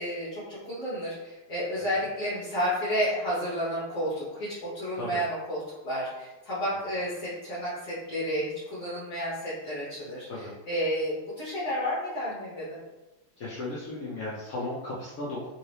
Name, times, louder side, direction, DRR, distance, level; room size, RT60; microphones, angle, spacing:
voice 1, 0.0-12.8, equal, 50° left, -9 dB, 1.4 m, -31 dB
voice 2, 13.4-15.5, left 2 dB, 75° left, -8 dB, 0.8 m, -35 dB
3.5 x 2.7 x 3.3 m, 1.1 s
omnidirectional pair, 2.4 m